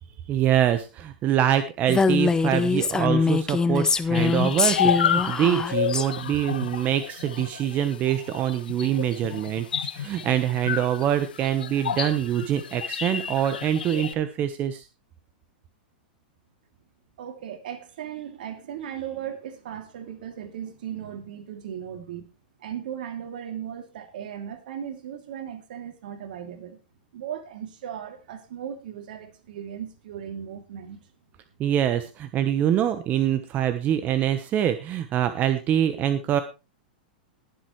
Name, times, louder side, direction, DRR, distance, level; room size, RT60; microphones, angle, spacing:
voice 1, 0.3-14.9 31.6-36.4, right 10 dB, 35° right, 10 dB, 1.1 m, -25 dB
Female speech woman speaking, 1.9-6.0, left 4 dB, 15° left, 0.8 m, -23 dB
sound 1, 4.1-14.1, left 8 dB, 85° left, 1.3 m, -30 dB
voice 2, 17.2-22.3 22.6-26.8 27.1-31.0, right 9 dB, 70° right, 6 dB, 2.8 m, -37 dB
21.0 x 7.6 x 3.2 m, 0.29 s
hypercardioid pair, 115°, 5 cm